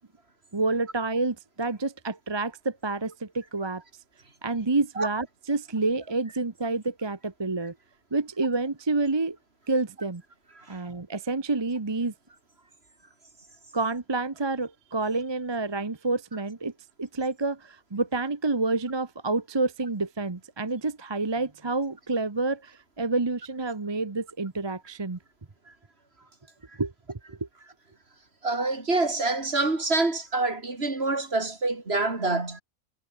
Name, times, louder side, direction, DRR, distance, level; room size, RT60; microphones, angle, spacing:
voice 1, 0.5-3.8 4.4-7.7 8.1-9.4 9.7-10.2 10.7-12.1 13.7-16.7 17.0-25.2 26.8-27.2, right 3 dB, 20° right, 0.9 m, -28 dB
voice 2, 28.4-32.6, right 3 dB, 45° right, 3.4 m, -26 dB
omnidirectional pair, 1.4 m